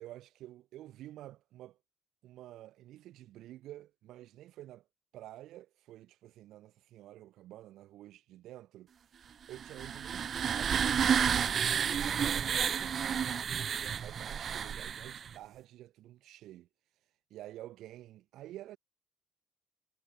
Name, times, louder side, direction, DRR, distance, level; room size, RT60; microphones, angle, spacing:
voice 1, 0.0-1.8 2.2-4.9 5.1-8.9 9.2-13.2 13.5-16.7 17.3-18.8, right 14 dB, 85° right, 4.4 m, -50 dB
sound 1, 9.5-15.3, right 7 dB, 55° right, 0.8 m, -31 dB
cardioid pair, 90°, 0 cm